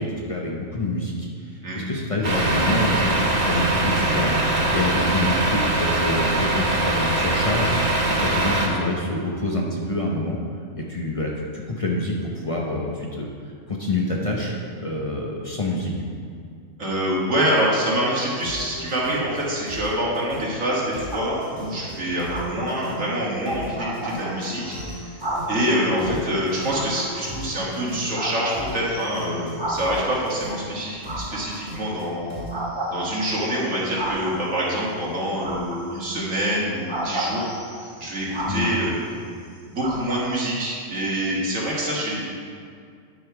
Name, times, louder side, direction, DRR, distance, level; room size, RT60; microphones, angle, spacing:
voice 1, 0.0-10.4 10.8-13.3 13.7-16.0 26.1-26.2 38.5-38.7, left 2 dB, 30° left, -2 dB, 0.8 m, -27 dB
Truck, 2.2-8.7, right 2 dB, 50° right, 1.5 m, -22 dB
voice 2, 16.8-25.2 25.5-37.5 38.0-39.0 39.7-42.2, right 1 dB, 85° right, -5 dB, 2.2 m, -26 dB
sound 1, 17.9-32.5, left 1 dB, 15° left, 2.0 m, -38 dB
sound 2, 21.1-21.7 22.3-23.0 23.5-23.6 23.8-26.0 26.7-27.7 28.1-30.3 31.0-31.9 32.5-34.7 35.4-36.2 36.9-39.2 39.8-40.3, right 1 dB, 20° right, 1.0 m, -32 dB
9.7 x 5.5 x 4.7 m, 2.3 s
omnidirectional pair, 1.3 m